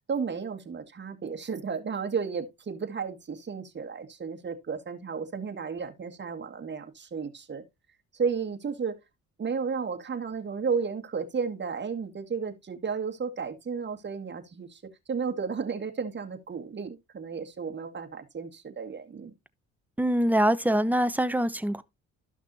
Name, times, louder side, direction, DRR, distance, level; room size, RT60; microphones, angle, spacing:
voice 1, 0.0-7.6 8.1-9.0 9.4-14.8 15.1-19.3, right 5 dB, 35° right, 2.0 m, -33 dB
voice 2, 20.0-21.8, right 1 dB, 5° right, 0.9 m, -24 dB
13.5 x 5.9 x 2.7 m
cardioid pair, 90°, 30 cm